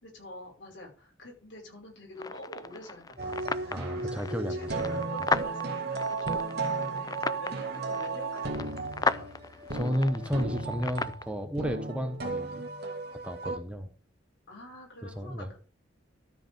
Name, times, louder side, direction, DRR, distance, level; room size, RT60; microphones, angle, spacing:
voice 1, 0.0-9.3 14.5-15.6, left 1 dB, 70° left, -1 dB, 5.8 m, -47 dB
sound 1, 2.2-11.2, left 4 dB, 20° left, 0.4 m, -36 dB
sound 2, 3.2-13.6, right 3 dB, 60° right, 1.9 m, -34 dB
voice 2, 3.7-4.9 9.7-12.6 13.1-13.9 15.0-15.5, equal, 5° right, 7 dB, 1.0 m, -32 dB
13.0 x 5.2 x 5.2 m, 0.35 s
head